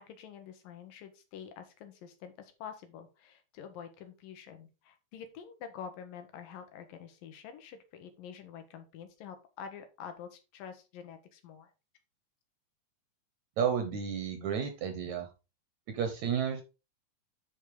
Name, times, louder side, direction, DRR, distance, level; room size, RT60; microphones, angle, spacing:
voice 1, 0.0-11.7, left 7 dB, 85° left, 8 dB, 3.1 m, -47 dB
voice 2, 13.6-15.3 15.9-16.6, right 7 dB, 65° right, 7 dB, 2.2 m, -32 dB
8.5 x 5.3 x 4.8 m, 0.29 s
omnidirectional pair, 3.9 m